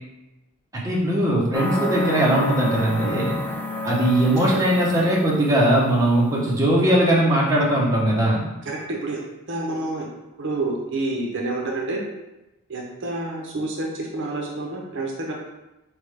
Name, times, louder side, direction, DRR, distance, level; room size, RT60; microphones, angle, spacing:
voice 1, 0.7-3.4 3.8-8.4, right 1 dB, 15° right, -5 dB, 0.8 m, -20 dB
sound 1, 1.5-5.9, left 1 dB, 10° left, 0.4 m, -30 dB
voice 2, 8.7-9.2 9.5-10.1 10.4-12.0 12.7-15.3, right 2 dB, 55° right, -1 dB, 0.6 m, -28 dB
4.1 x 3.4 x 3.3 m, 1.0 s
head